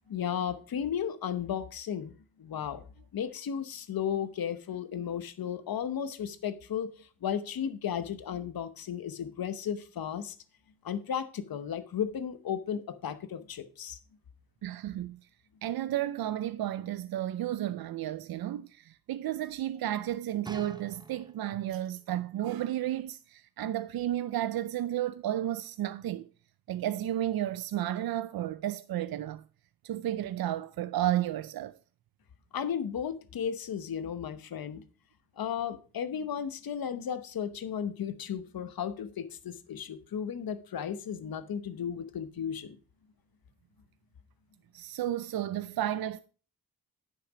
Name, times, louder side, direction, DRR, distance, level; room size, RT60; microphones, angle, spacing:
voice 1, 0.1-2.9 3.1-10.3 10.8-14.0 32.5-34.8 35.4-42.8, left 8 dB, 75° left, 1.0 m, -34 dB
voice 2, 14.6-15.2 15.6-26.3 26.7-29.4 29.8-31.8 44.7-46.2, right 12 dB, 80° right, 0.5 m, -32 dB
sound 1, 20.4-21.7 22.5-22.6, right 3 dB, 10° right, 0.6 m, -47 dB
10.0 x 5.9 x 5.0 m
wide cardioid pair, 100°, 36 cm